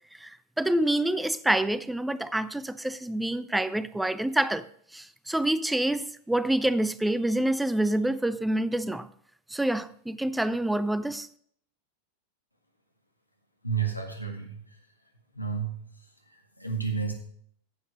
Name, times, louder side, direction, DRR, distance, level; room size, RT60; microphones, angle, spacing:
voice 1, 0.2-4.7 4.9-9.1 9.5-11.3, right 1 dB, 5° right, 0.4 m, -27 dB
voice 2, 13.6-14.8 15.3-15.9 16.6-17.1, right 6 dB, 90° left, 1.8 m, -31 dB
9.7 x 7.5 x 5.2 m
figure-of-eight pair, 90°, 0 cm